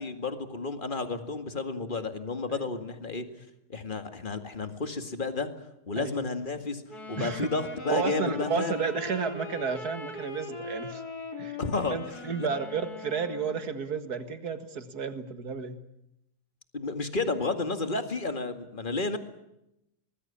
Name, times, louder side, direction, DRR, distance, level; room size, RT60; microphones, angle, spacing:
voice 1, 0.0-3.3 3.7-5.5 5.9-6.8 7.1-8.8 11.6-12.5 16.7-19.2, left 3 dB, 30° left, 8 dB, 2.1 m, -31 dB
Wind instrument woodwind instrument, 6.9-13.7, left 4 dB, 65° left, 3.5 m, -40 dB
voice 2, 7.2-7.5 7.9-11.0 11.4-11.6 11.9-15.8, right 5 dB, 65° right, 10 dB, 2.3 m, -32 dB
24.5 x 20.0 x 8.7 m, 0.85 s
omnidirectional pair, 1.8 m